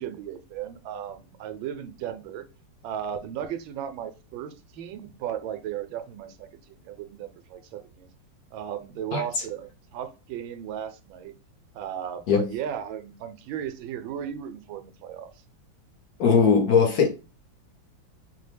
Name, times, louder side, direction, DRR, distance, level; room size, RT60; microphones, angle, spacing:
voice 1, 0.0-2.5 2.8-8.1 8.5-11.3 11.7-15.3, right 9 dB, 85° right, 1.4 m, -35 dB
voice 2, 9.1-9.4 12.3-12.5 16.2-17.1, left 5 dB, 60° left, 1.1 m, -20 dB
5.8 x 2.1 x 3.3 m
omnidirectional pair, 2.1 m